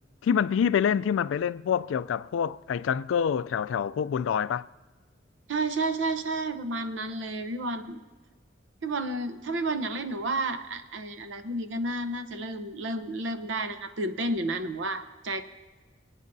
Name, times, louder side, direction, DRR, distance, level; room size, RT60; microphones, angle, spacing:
voice 1, 0.2-4.7, left 7 dB, 85° left, 0.3 m, -26 dB
voice 2, 5.5-8.0 8.8-15.4, right 2 dB, 70° right, 0.8 m, -31 dB
26.5 x 9.1 x 2.6 m
head